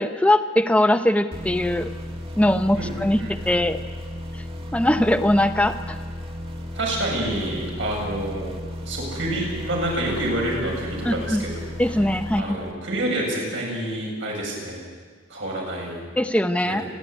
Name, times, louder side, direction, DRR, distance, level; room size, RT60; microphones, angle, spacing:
voice 1, 0.0-1.9 2.4-3.2 3.5-3.8 4.7-6.0 11.0-11.5 11.8-12.6 16.2-16.8, left 1 dB, 5° left, 8 dB, 0.8 m, -21 dB
sound 1, 1.3-13.0, left 1 dB, 30° right, 1.6 m, -34 dB
voice 2, 2.7-3.6 6.8-8.5 8.9-11.7 12.4-14.8 15.3-16.0 16.6-16.8, right 1 dB, 70° right, -2 dB, 7.6 m, -28 dB
29.5 x 11.5 x 9.6 m, 1.6 s
head